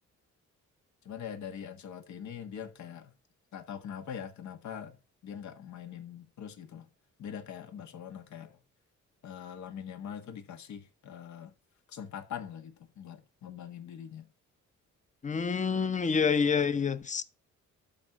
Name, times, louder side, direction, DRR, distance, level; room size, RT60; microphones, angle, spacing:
voice 1, 1.1-3.1 3.5-5.0 5.2-6.9 7.2-8.6 9.2-11.6 11.9-14.3, left 8 dB, 70° left, 1.6 m, -43 dB
voice 2, 15.2-17.2, left 6 dB, 25° left, 0.8 m, -27 dB
11.5 x 4.3 x 6.0 m
cardioid pair, 90°, 30 cm